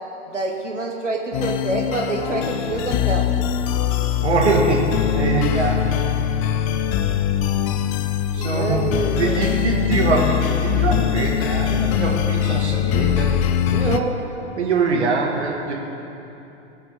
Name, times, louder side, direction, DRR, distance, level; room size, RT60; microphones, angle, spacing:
voice 1, 0.3-3.3 8.4-9.5, right 3 dB, 90° right, 1 dB, 1.2 m, -26 dB
sound 1, 1.3-14.0, left 10 dB, 30° left, 0.4 m, -22 dB
voice 2, 4.2-6.0 8.3-8.8 9.1-13.3 13.7-14.2 14.6-15.7, right 3 dB, 70° right, 0 dB, 1.8 m, -22 dB
19.0 x 8.2 x 3.6 m, 2.9 s
figure-of-eight pair, 100°, 35 cm